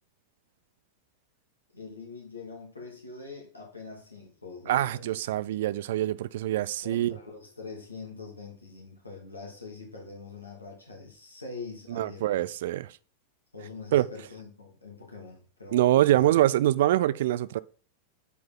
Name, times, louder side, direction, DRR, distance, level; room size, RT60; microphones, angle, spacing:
voice 1, 1.7-5.2 6.8-12.5 13.5-16.3, left 4 dB, 80° left, 2.6 m, -44 dB
voice 2, 4.7-7.2 11.9-12.9 13.9-14.1 15.7-17.6, right 13 dB, 55° right, 0.4 m, -24 dB
8.2 x 4.7 x 3.7 m
figure-of-eight pair, 90°, 0 cm